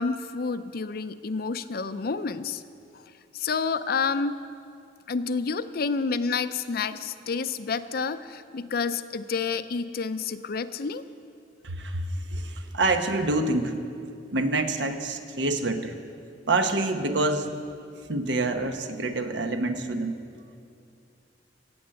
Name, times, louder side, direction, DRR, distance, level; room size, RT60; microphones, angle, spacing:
voice 1, 0.0-2.6 3.3-4.4 5.1-11.0, left 5 dB, 55° left, 12 dB, 0.5 m, -29 dB
voice 2, 11.6-13.8 14.3-16.0 16.5-17.5 18.1-20.2, right 2 dB, 80° right, 6 dB, 1.1 m, -27 dB
17.5 x 7.9 x 7.7 m, 2.4 s
head